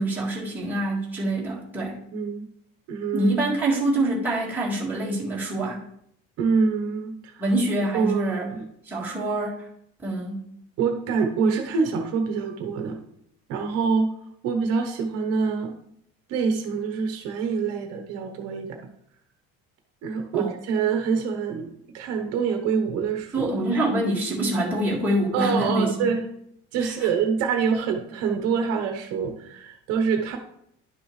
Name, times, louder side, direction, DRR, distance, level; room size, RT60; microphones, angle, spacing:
voice 1, 0.0-2.0 3.1-5.8 7.4-8.5 8.9-9.7 10.0-10.5 20.3-20.5 23.3-26.1 26.8-27.1, right 1 dB, 5° right, -6 dB, 1.9 m, -25 dB
voice 2, 2.1-2.5 2.9-3.3 6.4-7.4 7.9-8.6 10.8-13.0 13.5-14.1 14.4-15.8 16.3-18.8 20.0-23.5 25.3-26.2 26.7-30.4, right 5 dB, 55° right, 4 dB, 1.0 m, -25 dB
11.0 x 6.0 x 3.2 m, 0.73 s
cardioid pair, 175°, 30 cm